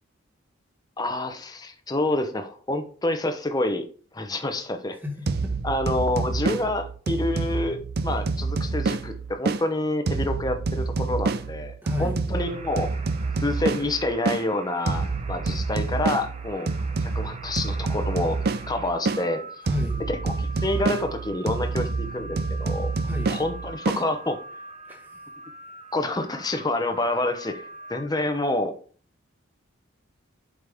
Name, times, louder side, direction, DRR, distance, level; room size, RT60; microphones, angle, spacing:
voice 1, 1.0-3.8 4.1-5.0 5.6-12.9 13.4-16.7 17.0-19.4 20.2-22.9 23.3-24.4 25.9-28.7, left 2 dB, 20° left, 6 dB, 0.8 m, -28 dB
voice 2, 4.9-5.5 11.8-12.2 19.6-20.0 23.0-23.3 24.9-25.3, left 3 dB, 10° right, 0 dB, 1.7 m, -33 dB
sound 1, 5.3-9.6 10.1-14.4 14.9-19.2 19.7-24.0, right 3 dB, 50° right, 0.5 m, -28 dB
sound 2, 12.4-28.0, right 2 dB, 30° right, 0.9 m, -43 dB
7.9 x 5.2 x 3.5 m, 0.43 s
head